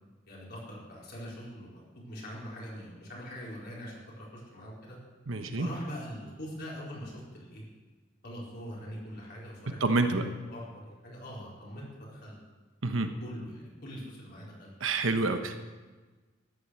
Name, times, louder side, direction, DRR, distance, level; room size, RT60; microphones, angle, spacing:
voice 1, 0.3-5.0 5.5-7.6 8.2-12.3 13.2-14.7, equal, 55° left, -5 dB, 4.5 m, -43 dB
voice 2, 5.3-5.7 9.8-10.2 12.8-13.1 14.8-15.7, right 3 dB, 80° right, 7 dB, 1.1 m, -28 dB
13.5 x 10.5 x 6.5 m, 1.3 s
head